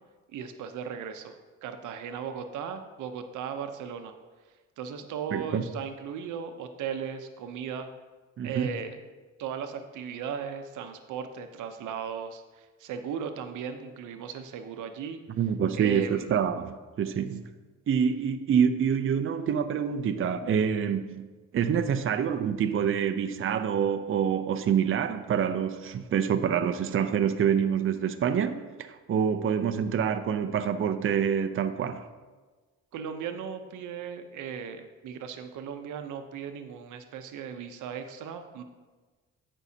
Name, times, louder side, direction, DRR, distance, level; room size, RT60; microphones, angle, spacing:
voice 1, 0.3-4.2 4.8-7.9 8.4-9.0 9.4-15.2 15.7-16.3 32.9-38.6, right 7 dB, 80° right, 0.8 m, -37 dB
voice 2, 5.3-5.6 8.4-8.7 15.4-17.4 17.9-21.3 21.5-28.5 28.8-32.1, right 8 dB, 45° right, 0.6 m, -26 dB
15.5 x 5.5 x 2.8 m
cardioid pair, 90°, 30 cm